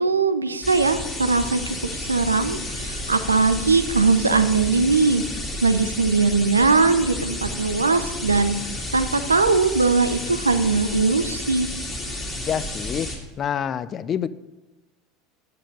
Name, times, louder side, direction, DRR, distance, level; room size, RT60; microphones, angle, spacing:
voice 1, 0.0-5.2 5.6-8.6 8.9-11.7, right 4 dB, 90° right, 11 dB, 0.6 m, -20 dB
sound 1, 0.6-13.2, left 1 dB, 10° left, 2.7 m, -31 dB
voice 2, 12.5-13.1 13.4-14.3, left 8 dB, 35° left, 16 dB, 0.5 m, -26 dB
10.0 x 7.6 x 5.3 m, 1.1 s
figure-of-eight pair, 80°, 0 cm